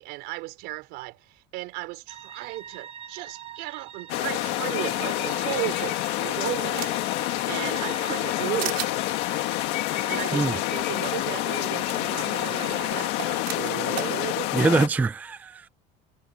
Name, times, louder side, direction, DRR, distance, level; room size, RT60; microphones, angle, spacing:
voice 1, 0.0-7.0 7.5-8.9 10.1-14.5, right 21 dB, 65° right, 4.8 m, -35 dB
sound 1, 2.1-12.9, right 9 dB, 35° right, 1.0 m, -42 dB
sound 2, 4.1-14.9, left 18 dB, 70° left, 1.8 m, -28 dB
sound 3, 5.8-7.2 7.6-8.3 8.6-8.9 10.4-10.5 10.8-10.9 11.9-12.0 13.0-14.1, right 25 dB, 85° right, 4.1 m, -35 dB
voice 2, 14.5-15.7, right 3 dB, 10° right, 0.5 m, -23 dB
cardioid pair, 170°, 18 cm